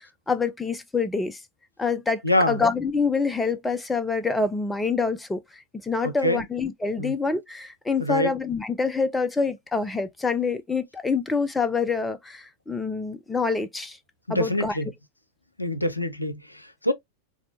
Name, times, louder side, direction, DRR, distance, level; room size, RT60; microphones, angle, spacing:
voice 1, 0.0-1.4 1.8-2.2 2.5-5.4 5.8-14.0 14.3-14.8, left 4 dB, 10° left, 0.4 m, -26 dB
voice 2, 2.2-2.6 6.0-6.4 7.0-7.1 8.0-8.3 14.3-14.9 15.6-16.9, left 1 dB, 85° left, 0.5 m, -25 dB
4.1 x 2.1 x 2.6 m
figure-of-eight pair, 90°, 0 cm